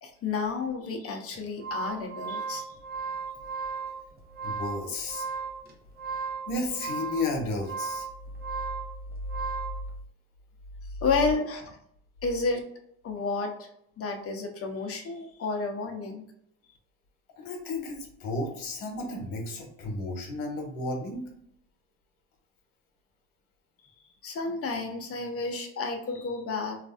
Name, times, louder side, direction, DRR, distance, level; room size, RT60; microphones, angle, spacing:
voice 1, 0.0-2.7 11.0-11.8 12.2-12.6 13.0-13.7 14.0-16.2 24.2-26.8, left 4 dB, 45° left, 3 dB, 0.8 m, -31 dB
sound 1, 1.3-9.8, right 5 dB, 30° right, 0.7 m, -36 dB
voice 2, 4.4-5.3 6.5-8.1 17.4-21.3, left 2 dB, 80° left, 1 dB, 1.1 m, -33 dB
3.2 x 2.5 x 2.4 m, 0.72 s
cardioid pair, 105°, 33 cm